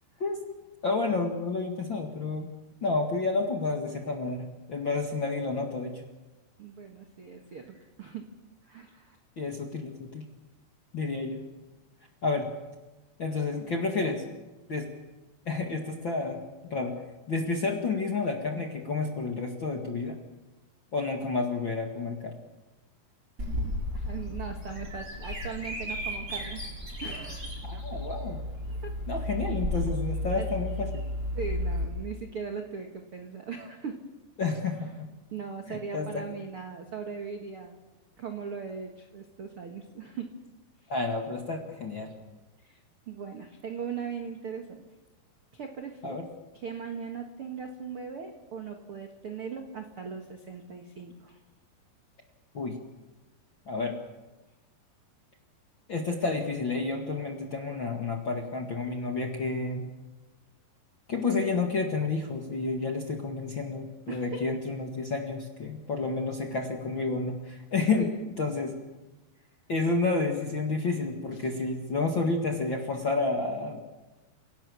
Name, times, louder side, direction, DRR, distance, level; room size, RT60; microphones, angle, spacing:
voice 1, 0.8-2.5 2.8-6.0 9.4-10.2 10.9-11.4 12.2-12.5 13.2-14.2 14.7-14.9 15.4-16.4 16.7-16.9 17.3-20.1 20.9-22.3 27.7-28.4 29.1-31.0 34.4-34.9 35.7-36.1 40.9-42.1 46.0-46.2 52.5-52.8 53.7-53.9 55.9-59.9 61.1-68.1 68.4-68.7 69.7-73.8, left 3 dB, 45° left, 2 dB, 1.6 m, -30 dB
voice 2, 6.6-8.3 8.6-9.2 23.6-26.6 27.0-27.6 28.7-28.9 30.4-30.5 31.3-34.0 34.8-35.0 35.3-37.8 38.2-40.3 42.6-44.8 45.5-46.2 46.5-51.4 64.1-64.4 68.0-68.3 71.3-71.5, right 6 dB, 65° right, 4 dB, 1.4 m, -39 dB
Bird vocalization bird call bird song, 23.4-31.8, left 1 dB, 20° right, 5.9 m, -33 dB
28.5 x 18.0 x 7.1 m, 1.1 s
omnidirectional pair, 5.1 m